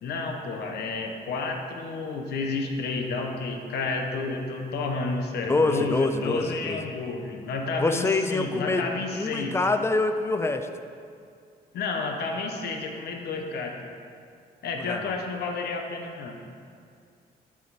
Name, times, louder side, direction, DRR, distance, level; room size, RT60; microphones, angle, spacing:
voice 1, 0.0-9.6 11.7-13.8 14.6-16.3, left 3 dB, 80° left, 3 dB, 1.0 m, -31 dB
voice 2, 5.5-6.8 7.8-8.8 9.1-10.7 14.9-15.1, left 3 dB, 15° left, 8 dB, 0.3 m, -25 dB
11.5 x 5.0 x 4.1 m, 2.3 s
cardioid pair, 155°, 17 cm